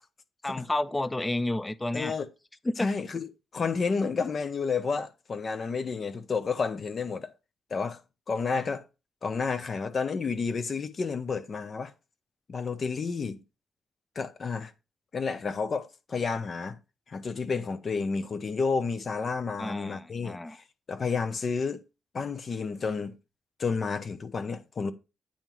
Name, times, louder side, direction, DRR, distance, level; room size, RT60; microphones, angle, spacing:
voice 1, 0.4-2.2 2.6-2.9 19.6-20.6, left 1 dB, 20° left, 0.5 m, -31 dB
voice 2, 1.9-2.3 2.8-3.3 3.5-7.3 7.7-8.0 8.3-8.8 9.2-11.9 12.5-13.4 14.1-14.7 15.1-16.8 17.1-21.8 22.1-23.2 23.6-24.9, left 5 dB, 50° left, 0.9 m, -30 dB
8.8 x 3.8 x 4.6 m
supercardioid pair, 60°, 0 cm